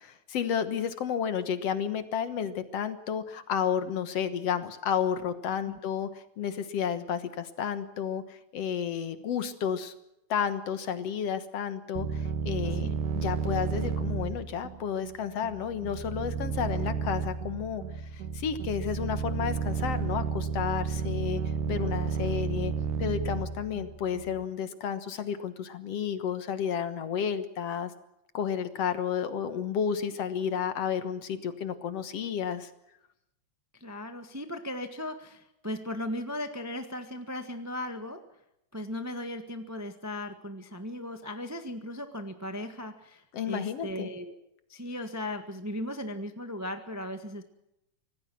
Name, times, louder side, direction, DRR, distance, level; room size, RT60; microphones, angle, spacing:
voice 1, 0.0-9.9 10.3-12.9 13.1-17.8 18.1-21.4 21.7-22.7 23.0-27.9 28.3-32.7 43.3-44.1, left 8 dB, 60° left, 11 dB, 2.2 m, -31 dB
sound 1, 11.9-24.4, right 6 dB, 85° right, 2.6 m, -32 dB
voice 2, 33.8-38.2 38.7-44.3 44.7-47.4, left 1 dB, 15° right, 7 dB, 0.5 m, -37 dB
25.5 x 18.5 x 6.2 m, 0.83 s
omnidirectional pair, 3.5 m